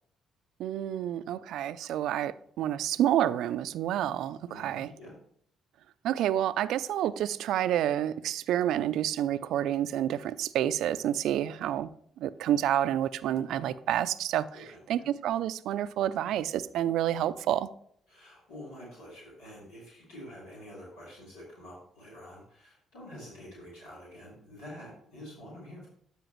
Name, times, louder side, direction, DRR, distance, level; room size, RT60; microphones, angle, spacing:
voice 1, 0.6-4.9 6.0-11.9 12.2-14.5 14.9-17.7, right 11 dB, 75° right, 0.4 m, -29 dB
voice 2, 4.5-5.2 14.5-15.1 18.1-25.9, equal, 85° left, 3.8 m, -47 dB
12.5 x 5.0 x 3.1 m
supercardioid pair, 60°, 0 cm